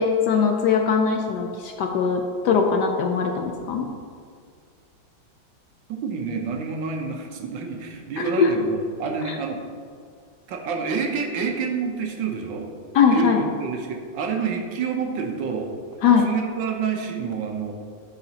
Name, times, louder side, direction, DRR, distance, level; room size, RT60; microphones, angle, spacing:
voice 1, 0.0-3.9 8.4-8.5 9.3-9.4 12.9-13.4 16.0-16.3, left 6 dB, 70° left, 3 dB, 1.1 m, -20 dB
voice 2, 5.9-9.6 10.5-12.7 13.1-15.7 16.2-17.7, right 5 dB, 75° right, 2 dB, 1.5 m, -28 dB
12.0 x 4.9 x 2.8 m, 2.1 s
omnidirectional pair, 2.1 m